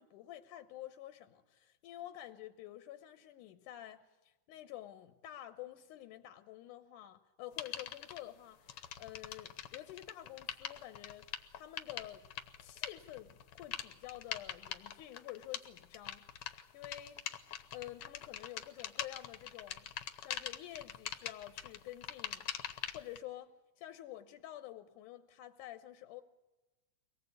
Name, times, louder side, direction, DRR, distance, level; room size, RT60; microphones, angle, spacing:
voice 1, 0.0-11.3 11.6-12.3 12.6-17.2 17.7-19.9 20.2-22.5 22.9-26.2, left 13 dB, 80° left, 2.4 m, -49 dB
sound 1, 7.6-8.2 8.7-23.2, left 9 dB, 60° left, 1.7 m, -43 dB
24.0 x 19.0 x 8.2 m
omnidirectional pair, 3.6 m